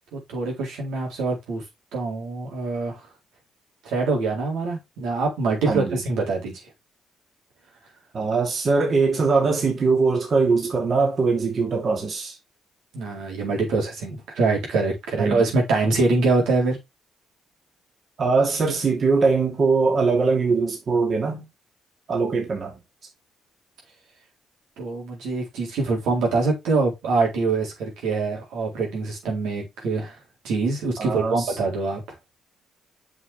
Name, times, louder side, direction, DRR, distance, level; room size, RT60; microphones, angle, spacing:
voice 1, 0.1-1.6 1.9-3.0 3.8-6.6 12.9-16.8 24.8-30.1 30.4-32.0, right 3 dB, 85° right, 4.2 m, -24 dB
voice 2, 5.7-6.0 8.1-12.4 15.2-15.4 18.2-21.4 22.1-22.8 31.0-31.5, right 4 dB, 45° right, 3.0 m, -21 dB
7.2 x 6.1 x 3.6 m
cardioid pair, 90°, 0 cm